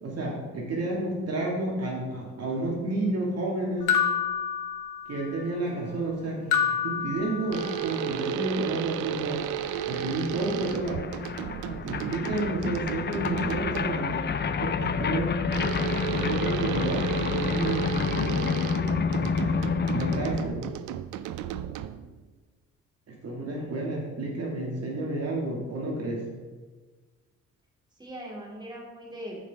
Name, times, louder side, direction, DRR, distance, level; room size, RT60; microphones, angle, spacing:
voice 1, 0.0-3.9 5.1-9.6 9.8-11.0 11.8-15.3 16.1-18.4 19.1-20.6 23.1-26.2, right 2 dB, 55° right, -2 dB, 2.2 m, -31 dB
sound 1, 3.9-5.3 6.5-8.0, left 8 dB, 90° left, 0.9 m, -28 dB
sound 2, 7.5-14.1 15.5-22.2, right 10 dB, 80° right, 0.5 m, -33 dB
sound 3, 9.3-9.4 9.6-20.5, left 6 dB, 35° left, 0.6 m, -29 dB
voice 2, 20.2-20.6 23.4-23.9 24.2-24.3 27.9-29.4, equal, 15° right, -3 dB, 2.9 m, -42 dB
13.5 x 5.7 x 3.6 m, 1.3 s
cardioid pair, 90°, 30 cm